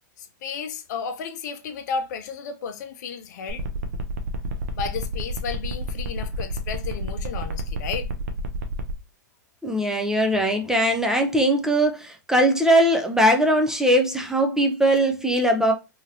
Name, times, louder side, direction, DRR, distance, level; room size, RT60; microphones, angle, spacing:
voice 1, 0.2-3.6 4.7-8.1, left 6 dB, 65° left, 0.5 m, -33 dB
sound 1, 3.5-8.9, right 3 dB, 60° right, 0.6 m, -30 dB
voice 2, 9.6-15.7, right 1 dB, 5° right, 0.5 m, -20 dB
2.8 x 2.8 x 2.6 m
hypercardioid pair, 105°, 10 cm